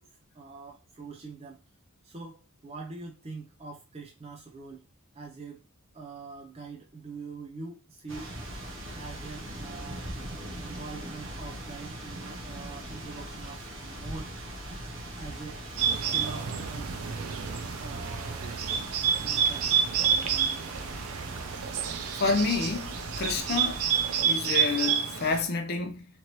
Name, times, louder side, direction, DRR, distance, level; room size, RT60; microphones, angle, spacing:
voice 1, 0.3-1.6 2.0-4.8 5.1-5.6 5.9-8.3 8.9-10.1 10.6-14.3 15.2-15.6 16.1-17.0 17.8-18.5 19.2-19.7, right 4 dB, 30° right, 0.5 m, -43 dB
sound 1, 8.1-24.2, right 1 dB, 55° right, 0.8 m, -40 dB
Bird, 15.8-25.4, right 7 dB, 85° right, 0.5 m, -29 dB
voice 2, 22.2-23.9 24.2-26.1, left 4 dB, 45° left, 0.5 m, -29 dB
3.0 x 2.6 x 3.0 m
head